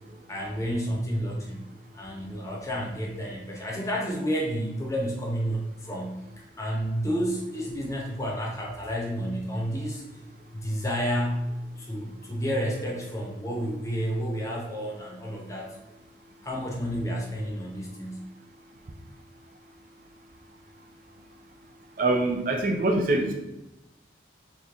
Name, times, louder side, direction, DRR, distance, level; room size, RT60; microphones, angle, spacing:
voice 1, 0.3-1.7 1.9-6.2 6.6-10.0 10.5-11.5 11.8-15.8 16.4-18.3, equal, 15° left, -2 dB, 0.7 m, -30 dB
voice 2, 22.0-23.3, right 2 dB, 45° right, 3 dB, 0.5 m, -24 dB
4.2 x 3.2 x 3.5 m, 0.95 s
head